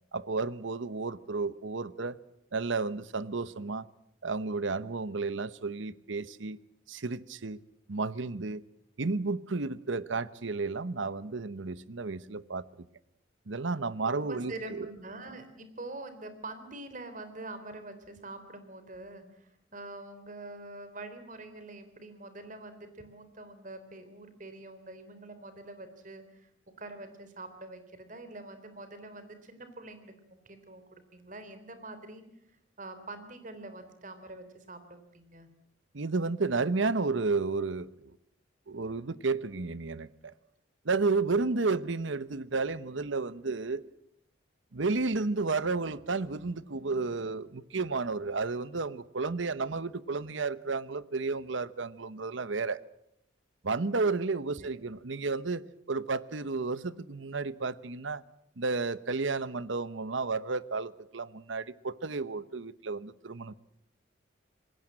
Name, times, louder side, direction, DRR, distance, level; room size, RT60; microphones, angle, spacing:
voice 1, 0.1-2.2 2.5-3.9 4.2-6.6 6.9-7.6 7.9-8.6 9.0-12.9 13.5-14.9 35.9-38.2 38.7-40.3 40.8-43.8 44.7-52.8 53.6-55.6 55.9-58.2 58.6-63.5, right 3 dB, 75° right, 1.0 m, -32 dB
voice 2, 14.0-26.5 26.8-32.2 32.8-35.5 54.6-54.8, right 2 dB, 40° right, 3.5 m, -45 dB
26.5 x 20.5 x 7.6 m
head